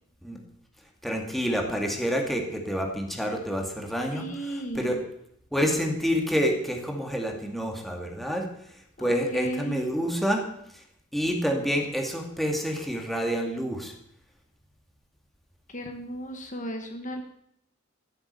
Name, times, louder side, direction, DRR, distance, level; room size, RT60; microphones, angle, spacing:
voice 1, 1.0-4.2 4.7-5.0 5.5-8.5 9.0-10.5 11.1-13.9, equal, ahead, 2 dB, 2.3 m, -28 dB
voice 2, 4.1-4.9 9.0-9.8 15.7-17.2, right 1 dB, 40° left, 5 dB, 1.6 m, -35 dB
16.0 x 7.9 x 8.2 m, 0.73 s
head